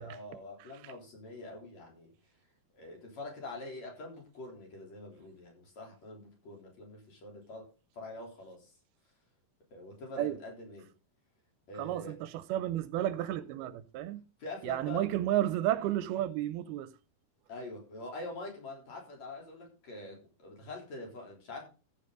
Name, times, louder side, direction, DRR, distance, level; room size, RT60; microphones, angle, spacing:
voice 1, 0.0-2.1 2.7-7.7 7.9-8.8 9.7-10.9 11.7-12.2 13.2-13.4 14.4-15.0 17.5-21.7, left 2 dB, 45° left, 4.7 m, -45 dB
voice 2, 11.8-14.2 14.6-16.9, right 13 dB, 80° right, 2.6 m, -32 dB
15.0 x 7.3 x 3.9 m
omnidirectional pair, 4.5 m